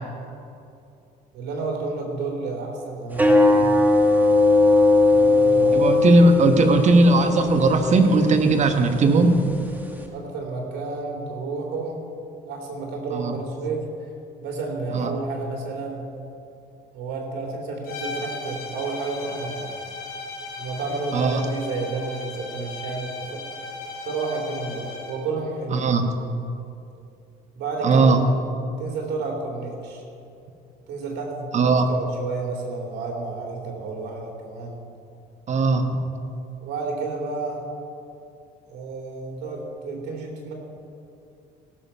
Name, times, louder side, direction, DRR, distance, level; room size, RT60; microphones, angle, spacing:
voice 1, 1.3-3.7 5.1-5.9 10.1-12.0 12.5-14.1 14.4-16.0 16.9-19.7 20.6-23.4 24.0-25.9 27.5-28.2 28.8-30.0 30.9-34.8 36.6-37.6 38.7-40.5, right 3 dB, 80° right, 0 dB, 2.9 m, -31 dB
sound 1, 3.1-10.1, left 2 dB, 10° right, 1.4 m, -20 dB
voice 2, 5.7-9.5 13.1-13.4 14.9-15.1 21.1-21.3 25.7-26.0 27.8-28.2 31.5-31.9 35.5-36.0, right 3 dB, 45° right, 6 dB, 1.2 m, -18 dB
sound 2, 17.8-25.3, left 3 dB, 60° left, 3.0 m, -36 dB
17.0 x 7.2 x 5.6 m, 2.7 s
cardioid pair, 110°, 17 cm